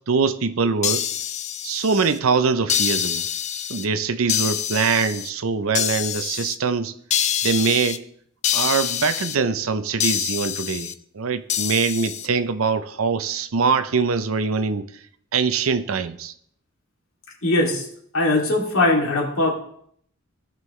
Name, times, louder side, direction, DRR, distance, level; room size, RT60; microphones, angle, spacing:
voice 1, 0.1-1.1 1.6-3.3 3.5-6.9 7.4-8.0 8.5-14.9 15.3-16.3, right 5 dB, 75° right, 0.6 m, -23 dB
sound 1, 0.8-2.2 2.7-3.9 4.3-5.3 5.7-6.6 7.1-8.0 8.4-9.4 10.0-10.9 11.5-12.3, left 10 dB, 30° left, 0.4 m, -25 dB
voice 2, 17.4-17.8 18.1-19.5, left 2 dB, 70° left, 2.6 m, -20 dB
16.5 x 5.5 x 3.2 m
head